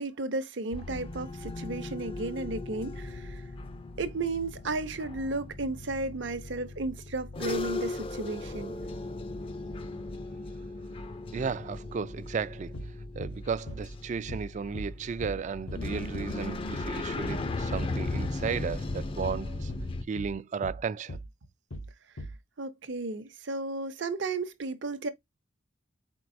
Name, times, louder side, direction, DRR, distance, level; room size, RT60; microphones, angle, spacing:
voice 1, 0.0-3.4 4.0-8.7 22.6-25.1, right 3 dB, 65° right, 0.7 m, -34 dB
sound 1, 0.7-20.0, left 2 dB, 30° left, 0.4 m, -37 dB
voice 2, 11.3-12.8 13.2-19.7 20.1-21.2, right 6 dB, 40° right, 0.3 m, -34 dB
sound 2, 12.7-12.9 13.2-13.4 13.7-13.9 14.3-14.5 14.7-14.9 15.2-15.4 15.7-15.9 16.1-16.3 16.8-17.0 17.2-17.4 17.7-17.9 18.1-18.4 18.6-18.8 19.2-19.4 19.7-19.9 20.2-20.4 20.6-20.8 21.1-21.3 21.7-21.9 22.2-22.4, equal, 90° left, 1.0 m, -39 dB
4.5 x 4.5 x 2.5 m
head